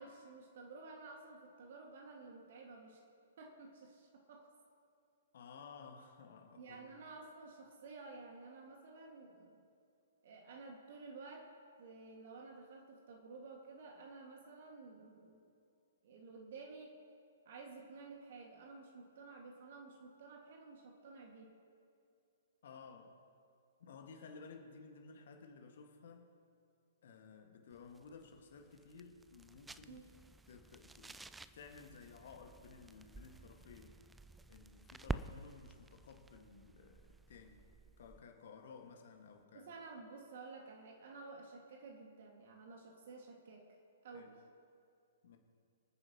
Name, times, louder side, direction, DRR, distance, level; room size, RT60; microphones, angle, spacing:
voice 1, 0.0-3.0 3.4-4.5 6.6-9.6 10.2-11.5 11.8-15.4 16.0-17.0 17.5-21.6 29.9-30.1 39.5-43.7 44.0-44.4, right 3 dB, 50° right, 1 dB, 1.9 m, -53 dB
voice 2, 5.3-7.0 22.6-23.2 23.8-26.3 27.0-30.0 30.5-31.2 31.5-34.0 34.5-37.7 38.0-39.7 44.1-44.3 45.2-45.4, left 5 dB, 50° left, 3 dB, 1.7 m, -55 dB
sound 1, 27.7-38.4, right 3 dB, 5° right, 0.3 m, -50 dB
25.5 x 9.7 x 3.0 m, 2.4 s
figure-of-eight pair, 115°, 0 cm